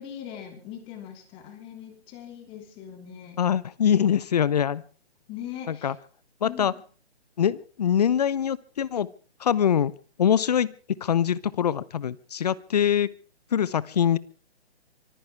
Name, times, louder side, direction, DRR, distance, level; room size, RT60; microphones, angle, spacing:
voice 1, 0.0-3.4 5.3-5.9 6.4-6.7, left 10 dB, 15° left, 5 dB, 3.0 m, -40 dB
voice 2, 3.4-4.8 5.7-5.9 6.4-6.7 7.4-9.1 9.4-9.9 10.2-13.1 13.5-14.2, left 9 dB, 35° left, 20 dB, 0.8 m, -23 dB
25.0 x 15.0 x 3.4 m, 0.40 s
hypercardioid pair, 160°, 33 cm